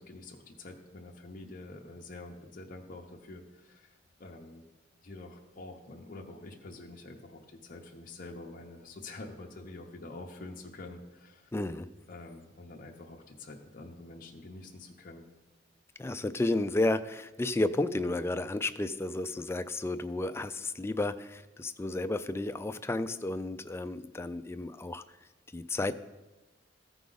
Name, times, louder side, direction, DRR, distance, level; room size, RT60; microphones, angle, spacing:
voice 1, 0.0-3.9 4.2-4.6 5.0-11.5 12.1-15.2, left 2 dB, 50° left, 0 dB, 0.8 m, -47 dB
voice 2, 11.5-11.9 16.0-25.0 25.5-25.9, left 2 dB, 15° left, 10 dB, 0.3 m, -32 dB
14.0 x 4.9 x 3.9 m, 1.1 s
head